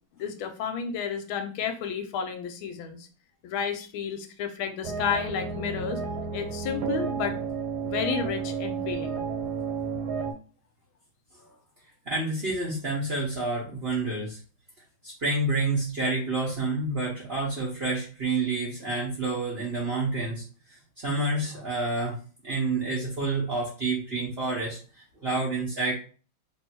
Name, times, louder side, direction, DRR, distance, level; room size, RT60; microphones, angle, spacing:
voice 1, 0.2-3.1 3.4-6.0 6.3-7.4 7.8-9.2, left 7 dB, 90° left, 6 dB, 1.5 m, -31 dB
sound 1, 4.8-10.3, right 5 dB, 90° right, 1.6 m, -31 dB
voice 2, 12.0-14.4 15.0-20.4 21.0-22.2 22.4-24.8 25.2-25.9, right 3 dB, 45° right, -5 dB, 0.9 m, -28 dB
3.2 x 2.7 x 4.5 m, 0.37 s
omnidirectional pair, 2.2 m